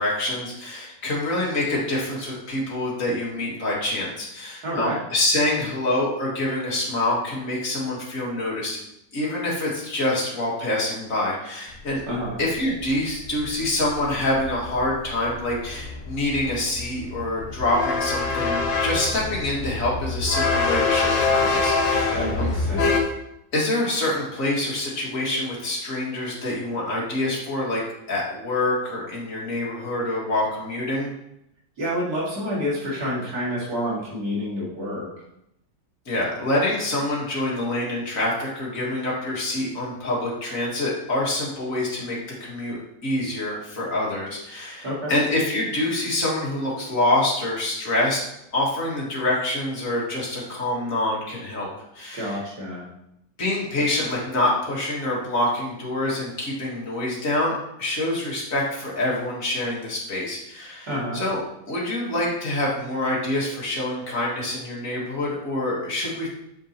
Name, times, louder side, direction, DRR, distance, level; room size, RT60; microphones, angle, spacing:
voice 1, 0.0-8.8 9.1-12.0 12.4-22.5 23.5-27.8 28.1-31.1 36.1-48.2 48.5-51.7 51.9-52.4 53.4-61.4 61.7-66.3, left 1 dB, 45° left, -4 dB, 2.3 m, -26 dB
voice 2, 4.6-5.0 12.1-12.4 22.1-22.9 31.8-35.1 44.8-45.1 52.1-52.8 60.9-61.2, equal, 55° right, -6 dB, 2.7 m, -28 dB
sound 1, 11.7-11.8 12.0-23.0, left 3 dB, 85° left, 1.8 m, -25 dB
7.3 x 7.3 x 2.9 m, 0.81 s
omnidirectional pair, 1.9 m